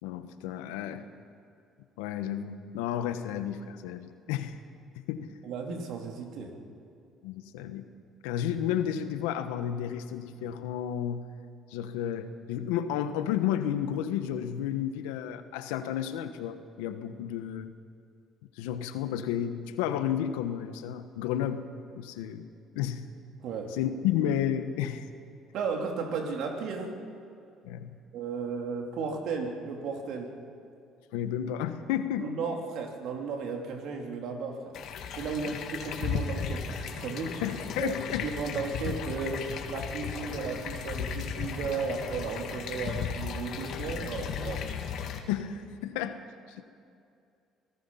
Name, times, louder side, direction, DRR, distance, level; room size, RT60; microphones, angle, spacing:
voice 1, 0.0-1.0 2.0-4.6 5.1-5.3 7.2-7.8 8.2-11.3 11.7-17.7 18.6-21.7 21.9-22.5 22.7-23.1 23.7-25.1 27.6-28.0 31.1-32.3 35.4-35.6 37.4-38.3 45.3-46.2 46.5-46.6, left 10 dB, 90° left, 10 dB, 1.2 m, -32 dB
voice 2, 5.4-6.6 23.4-23.8 25.5-27.0 28.1-30.4 32.2-34.8 35.1-37.4 37.8-37.9 38.2-44.7, right 5 dB, 70° right, 2 dB, 3.2 m, -34 dB
sound 1, 34.7-45.2, left 6 dB, 70° left, 2.0 m, -35 dB
25.5 x 18.5 x 5.7 m, 2.5 s
supercardioid pair, 75°, 0 cm